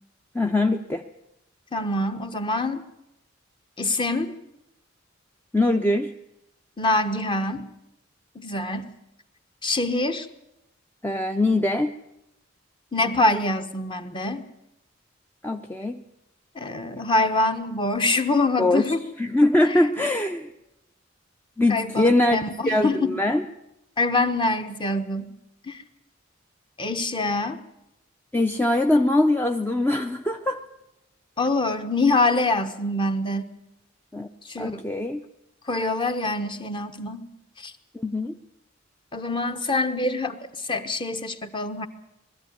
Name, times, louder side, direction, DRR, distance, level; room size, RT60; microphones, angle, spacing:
voice 1, 0.3-1.0 5.5-6.1 11.0-11.9 15.4-16.0 18.6-18.9 19.2-20.5 21.6-22.4 22.6-23.5 28.3-30.6 34.1-34.3 34.6-35.2 37.9-38.3, left 1 dB, 10° left, 4 dB, 0.6 m, -22 dB
voice 2, 1.7-2.8 3.8-4.3 6.8-7.7 8.3-8.9 9.6-10.3 12.9-14.4 16.5-19.0 19.6-19.8 21.7-23.1 24.0-25.3 25.6-25.8 26.8-27.6 31.4-33.5 34.4-34.9 35.7-37.3 37.6-37.7 39.1-41.9, left 2 dB, 25° left, 7 dB, 1.2 m, -25 dB
20.5 x 14.0 x 9.4 m, 0.87 s
head